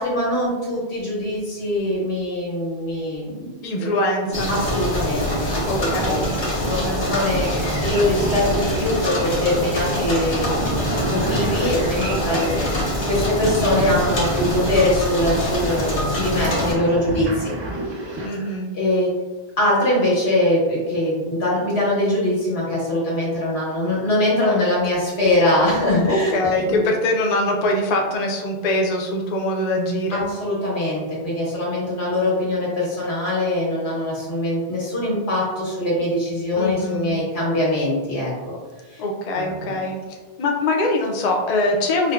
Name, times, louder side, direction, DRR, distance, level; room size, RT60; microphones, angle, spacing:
voice 1, 0.0-3.9 4.2-10.8 11.0-17.5 18.2-19.1 19.6-26.8 30.1-38.5 38.9-39.0 39.4-39.8, left 1 dB, 85° left, -5 dB, 1.5 m, -23 dB
voice 2, 3.6-4.6 5.7-7.2 12.1-12.7 18.2-18.7 26.1-30.2 36.6-37.2 39.0-40.0 40.4-42.1, left 1 dB, 50° left, 1 dB, 0.5 m, -23 dB
sound 1, 4.3-16.7, left 1 dB, 70° left, 1.2 m, -24 dB
sound 2, 7.4-18.3, right 1 dB, 45° right, 0.3 m, -30 dB
4.7 x 2.1 x 2.3 m, 1.2 s
omnidirectional pair, 1.1 m